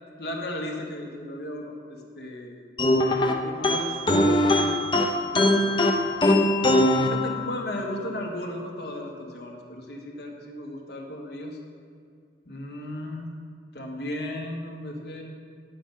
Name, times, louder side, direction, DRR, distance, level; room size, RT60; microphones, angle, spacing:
voice 1, 0.2-2.6 3.4-4.0 4.2-6.0 7.0-11.6 12.5-13.3 13.7-15.2, left 1 dB, 70° left, 0 dB, 1.7 m, -36 dB
sound 1, 2.8-7.9, left 1 dB, 25° left, 0.7 m, -22 dB
10.5 x 8.5 x 5.7 m, 2.2 s
head